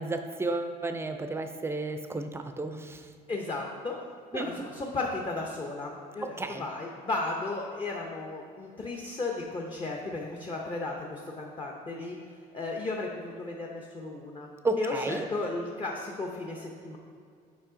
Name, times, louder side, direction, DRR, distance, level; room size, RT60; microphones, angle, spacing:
voice 1, 0.0-3.1 4.3-4.6 6.2-6.6 14.6-15.3, right 2 dB, 15° right, 7 dB, 0.5 m, -32 dB
voice 2, 3.3-4.0 4.3-12.2 12.5-14.5 14.8-17.0, left 3 dB, 30° left, -1 dB, 0.7 m, -34 dB
7.2 x 4.9 x 3.8 m, 2.3 s
cardioid pair, 110°, 17 cm